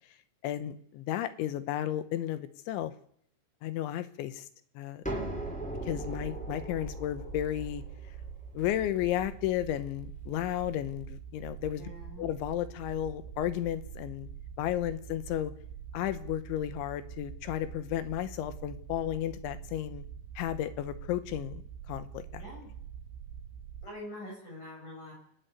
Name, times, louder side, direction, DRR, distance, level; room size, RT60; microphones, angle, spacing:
voice 1, 0.4-2.9 3.6-4.5 4.8-5.0 5.8-7.8 8.6-11.9 12.2-14.3 14.6-15.5 15.9-20.0 20.4-21.6 21.9-22.4, left 12 dB, 80° left, 12 dB, 3.5 m, -33 dB
sound 1, 5.0-10.6, right 1 dB, ahead, 3.9 m, -40 dB
sound 2, 5.2-23.9, right 8 dB, 75° right, 3.2 m, -45 dB
voice 2, 11.8-12.3 22.4-22.7 23.8-25.1, left 1 dB, 40° left, -2 dB, 8.1 m, -44 dB
27.0 x 12.5 x 9.3 m, 0.66 s
omnidirectional pair, 5.3 m